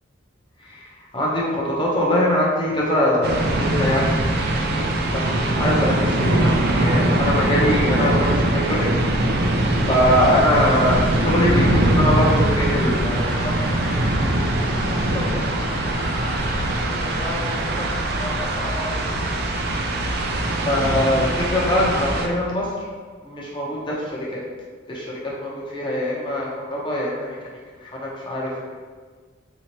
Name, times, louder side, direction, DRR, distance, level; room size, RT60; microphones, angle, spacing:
voice 1, 0.6-9.3 9.8-14.3 14.9-15.7 16.9-17.9 18.2-19.4 20.6-22.7 23.2-24.4 24.9-27.5 27.8-28.5, left 1 dB, 25° left, -5 dB, 0.8 m, -23 dB
sound 1, 3.2-22.3, right 1 dB, 55° right, 0.4 m, -22 dB
sound 2, 11.7-16.7, left 2 dB, 85° left, 0.3 m, -37 dB
4.1 x 2.8 x 2.9 m, 1.5 s
head